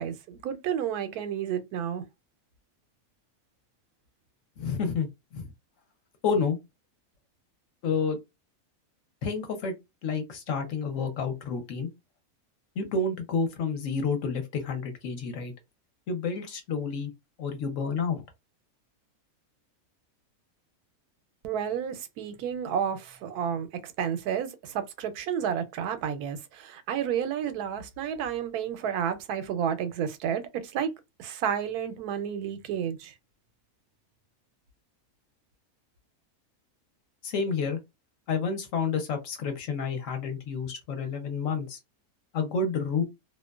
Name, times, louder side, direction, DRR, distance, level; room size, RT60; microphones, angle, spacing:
voice 1, 0.0-2.0 21.4-30.9 31.2-33.1, right 8 dB, 85° right, 1.1 m, -31 dB
voice 2, 4.6-5.1 5.3-5.5 6.2-6.6 7.8-8.2 9.2-9.7 10.0-11.9 12.8-15.5 16.1-17.1 17.4-18.2 37.2-37.8 38.3-41.8 42.3-43.0, left 5 dB, 65° left, 0.9 m, -29 dB
2.6 x 2.1 x 2.2 m
omnidirectional pair, 1.6 m